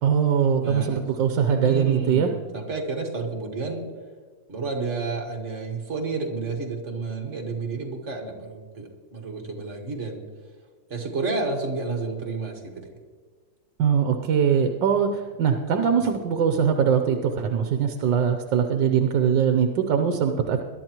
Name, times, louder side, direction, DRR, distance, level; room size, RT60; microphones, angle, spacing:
voice 1, 0.0-2.3 13.8-20.6, right 7 dB, 75° right, 5 dB, 1.5 m, -22 dB
voice 2, 0.6-1.0 1.5-3.9 4.5-10.2 10.9-12.9, right 3 dB, 40° right, 1 dB, 2.0 m, -31 dB
22.0 x 11.0 x 3.0 m, 1.5 s
omnidirectional pair, 2.0 m